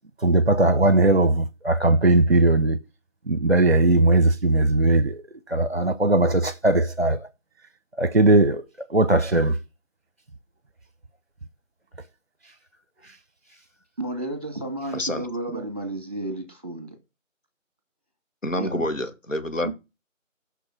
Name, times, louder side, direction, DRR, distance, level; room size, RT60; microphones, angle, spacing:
voice 1, 0.2-2.8 3.3-5.2 5.5-7.2 8.0-8.6 8.9-9.6, right 2 dB, 55° right, 0.8 m, -19 dB
voice 2, 14.0-17.0 18.6-18.9 19.6-19.7, right 2 dB, 30° right, 2.2 m, -32 dB
voice 3, 14.9-15.3 18.4-19.7, left 1 dB, 70° left, 1.9 m, -27 dB
6.3 x 6.0 x 6.0 m
figure-of-eight pair, 175°, 40 cm